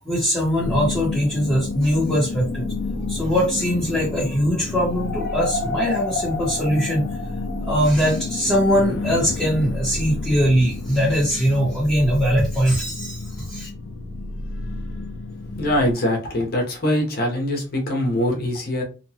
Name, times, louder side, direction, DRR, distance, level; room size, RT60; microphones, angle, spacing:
voice 1, 0.0-2.6 3.1-7.1 7.6-13.7, equal, 5° left, -8 dB, 0.8 m, -21 dB
sound 1, 0.6-15.9, left 3 dB, 85° left, 0.4 m, -30 dB
voice 2, 15.6-18.8, left 1 dB, 50° left, 1 dB, 0.8 m, -23 dB
2.8 x 2.2 x 2.7 m, 0.32 s
head